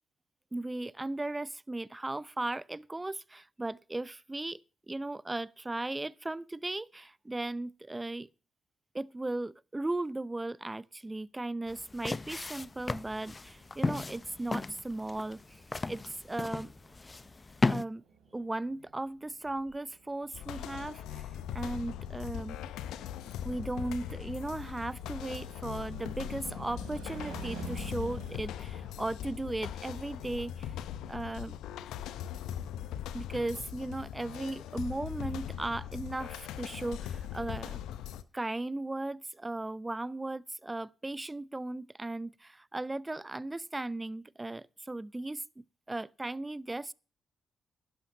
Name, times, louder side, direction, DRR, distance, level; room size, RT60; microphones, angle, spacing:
voice 1, 0.5-4.6 4.9-8.3 8.9-15.6 15.9-16.7 17.7-18.0 18.3-22.7 23.4-30.7 31.1-31.6 33.1-37.8 38.3-46.9, right 2 dB, 20° right, 0.7 m, -37 dB
sound 1, 11.7-17.8, left 3 dB, 30° left, 0.6 m, -35 dB
sound 2, 12.4-28.4, right 5 dB, 85° right, 3.4 m, -50 dB
sound 3, 20.3-38.2, left 10 dB, 80° left, 0.7 m, -40 dB
11.5 x 11.5 x 5.0 m
hypercardioid pair, 45°, 0 cm